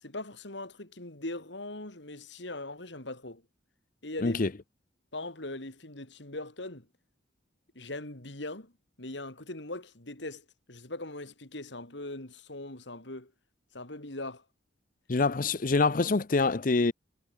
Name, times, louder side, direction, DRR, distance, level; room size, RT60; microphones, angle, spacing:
voice 1, 0.0-3.4 4.0-4.4 5.1-6.9 7.8-8.7 9.0-13.3 13.7-14.4, left 2 dB, 65° left, 3.5 m, -40 dB
voice 2, 15.1-16.9, left 3 dB, 45° left, 0.6 m, -25 dB
head